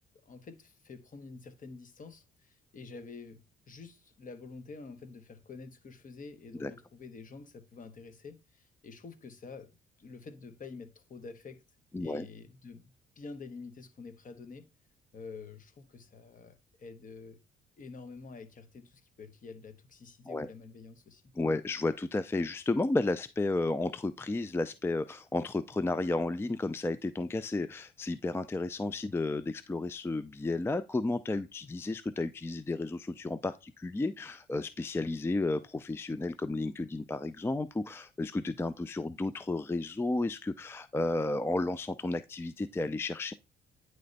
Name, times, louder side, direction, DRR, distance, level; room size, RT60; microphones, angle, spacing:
voice 1, 0.2-11.6 12.0-14.7 15.1-17.4 17.8-21.3, left 4 dB, 40° left, 1.1 m, -48 dB
voice 2, 11.9-12.3 20.3-20.5 21.4-43.3, left 2 dB, 10° left, 0.3 m, -32 dB
9.4 x 3.2 x 3.9 m
cardioid pair, 90°, 20 cm